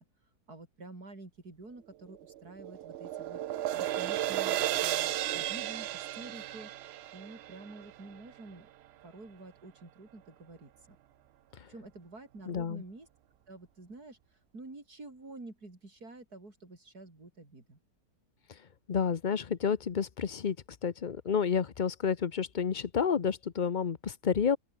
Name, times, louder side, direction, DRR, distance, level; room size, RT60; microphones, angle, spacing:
voice 1, 0.5-6.7 7.1-8.7 9.0-11.0 11.7-13.1 13.5-14.2 14.5-17.8, right 2 dB, 85° right, 5.9 m, -49 dB
sound 1, 2.1-8.4, right 12 dB, 70° right, 0.6 m, -34 dB
voice 2, 12.5-12.8 18.9-20.6 20.8-24.6, left 7 dB, 40° left, 0.8 m, -30 dB
open air
omnidirectional pair, 1.6 m